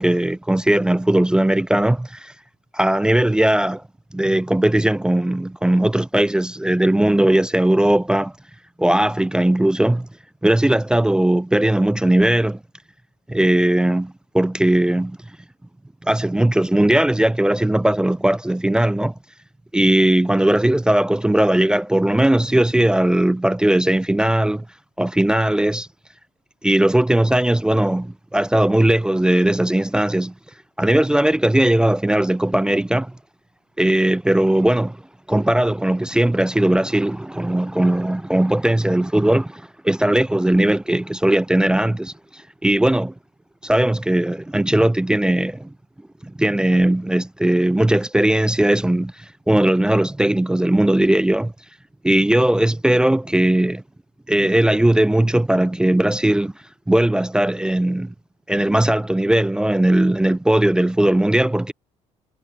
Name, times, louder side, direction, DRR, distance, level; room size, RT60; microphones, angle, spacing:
voice 1, 0.0-2.3 2.7-3.8 4.1-8.3 8.8-10.1 10.4-12.6 13.3-15.2 16.0-19.1 19.7-24.6 25.0-25.9 26.6-30.3 30.8-33.1 33.8-35.0 35.3-42.1 42.6-43.1 43.6-45.7 46.2-49.1 49.5-51.5 52.0-53.8 54.3-56.5 56.9-58.1 58.5-61.7, right 1 dB, 5° right, 0.3 m, -18 dB
cardioid pair, 105°, 12 cm